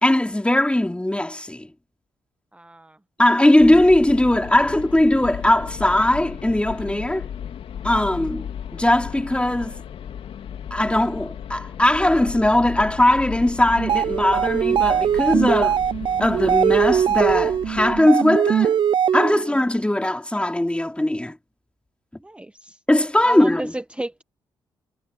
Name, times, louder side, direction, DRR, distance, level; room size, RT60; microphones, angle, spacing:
voice 1, 0.0-1.7 3.2-7.3 7.8-9.8 10.7-15.8 16.2-18.8 19.1-21.4 22.9-23.7, left 1 dB, 10° left, 3.4 m, -19 dB
voice 2, 2.5-3.0 22.2-22.8 23.2-24.2, right 1 dB, 10° right, 1.2 m, -33 dB
sound 1, 3.6-18.0, left 9 dB, 70° left, 3.5 m, -35 dB
sound 2, 13.8-19.5, right 9 dB, 50° right, 0.4 m, -21 dB
supercardioid pair, 55°, 10 cm